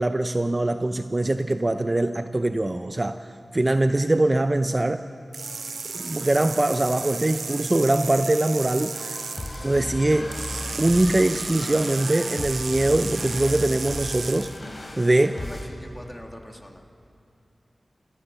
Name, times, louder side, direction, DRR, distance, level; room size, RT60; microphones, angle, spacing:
voice 1, 0.0-5.1 5.9-9.2 9.6-10.3 10.8-14.5 15.0-15.4, right 2 dB, 30° right, 9 dB, 0.6 m, -22 dB
sound 1, 5.3-9.6 10.3-14.6, right 4 dB, 85° right, 0.4 m, -34 dB
Singing, 5.4-12.3, left 2 dB, 75° left, 7.7 m, -46 dB
sound 2, 8.9-15.6, left 1 dB, 40° left, 4.0 m, -36 dB
voice 2, 15.3-16.8, left 1 dB, 10° left, 3 dB, 2.3 m, -42 dB
29.5 x 15.5 x 7.0 m, 2.6 s
wide cardioid pair, 60°, 0 cm